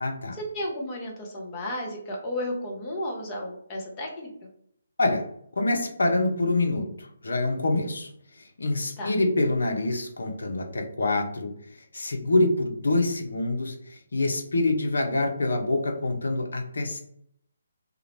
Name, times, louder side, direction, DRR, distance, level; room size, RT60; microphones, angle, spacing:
voice 1, 0.0-0.4 5.0-5.3 5.6-17.0, left 2 dB, 65° left, 3 dB, 0.5 m, -26 dB
voice 2, 0.5-4.3 9.0-9.1, left 1 dB, 25° left, -2 dB, 0.7 m, -33 dB
2.4 x 2.0 x 2.9 m, 0.70 s
figure-of-eight pair, 140°, 0 cm